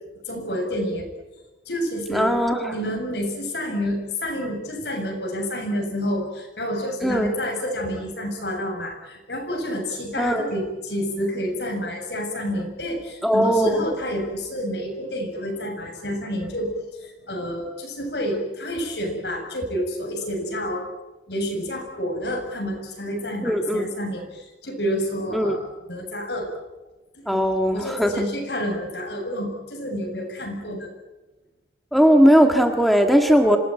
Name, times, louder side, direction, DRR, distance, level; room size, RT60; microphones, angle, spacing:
voice 1, 0.3-1.1 1.7-2.3 2.7-16.7 17.0-20.8 21.3-26.5 27.1-27.4 27.7-30.9, equal, 75° left, 3 dB, 7.4 m, -29 dB
voice 2, 2.1-2.7 7.0-7.3 10.2-10.5 13.2-13.8 23.4-23.8 25.3-25.6 27.2-28.2 31.9-33.6, equal, ahead, 4 dB, 1.7 m, -19 dB
27.0 x 19.0 x 9.1 m, 1.1 s
head